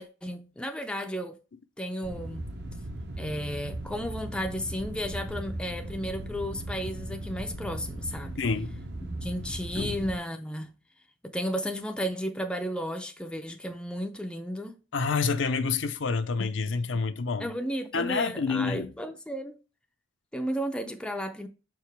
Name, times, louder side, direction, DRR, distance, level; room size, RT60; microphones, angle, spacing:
voice 1, 0.0-1.4 1.8-2.4 3.2-8.4 9.2-10.7 11.2-14.8 17.4-19.5 20.3-21.5, equal, 5° left, 0.5 m, -33 dB
sound 1, 2.0-10.2, right 1 dB, 55° right, 0.8 m, -38 dB
voice 2, 8.4-8.8 9.8-10.0 14.9-17.5 17.9-18.9, left 4 dB, 65° left, 0.5 m, -28 dB
6.5 x 4.7 x 3.4 m
head